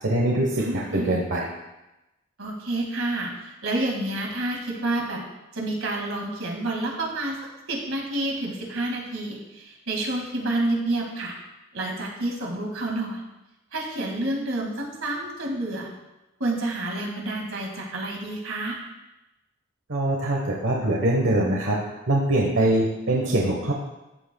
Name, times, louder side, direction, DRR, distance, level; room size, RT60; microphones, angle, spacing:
voice 1, 0.0-1.5 19.9-21.8 22.1-23.7, right 1 dB, 70° right, -1 dB, 1.2 m, -23 dB
voice 2, 0.6-1.1 2.4-5.2 5.5-7.4 7.7-11.3 11.7-13.3 13.7-15.9 16.4-18.8, right 2 dB, 85° right, 0 dB, 2.1 m, -29 dB
14.0 x 7.9 x 2.3 m, 0.98 s
head